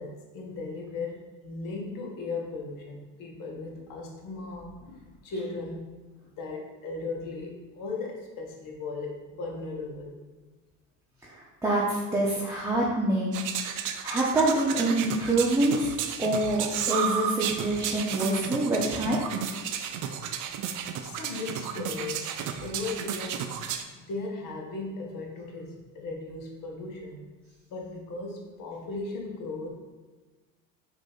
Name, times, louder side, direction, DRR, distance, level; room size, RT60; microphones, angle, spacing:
voice 1, 0.0-5.8 6.2-10.2 21.0-22.3 22.6-23.5 23.9-27.3 27.7-29.7, left 3 dB, 60° left, 0 dB, 1.2 m, -37 dB
voice 2, 11.3-13.4 14.0-15.9 16.2-19.2, right 1 dB, 5° right, -7 dB, 0.9 m, -26 dB
sound 1, 13.3-23.8, right 8 dB, 55° right, 0.5 m, -33 dB
4.9 x 2.8 x 3.9 m, 1.3 s
supercardioid pair, 80°, 37 cm